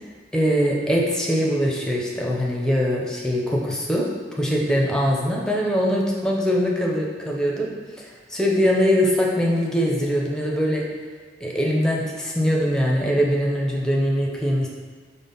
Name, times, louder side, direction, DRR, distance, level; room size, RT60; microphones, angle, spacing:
voice 1, 0.3-4.1 4.4-7.7 8.0-10.8 11.4-14.7, equal, 5° left, -3 dB, 0.5 m, -22 dB
5.2 x 2.0 x 3.9 m, 1.5 s
head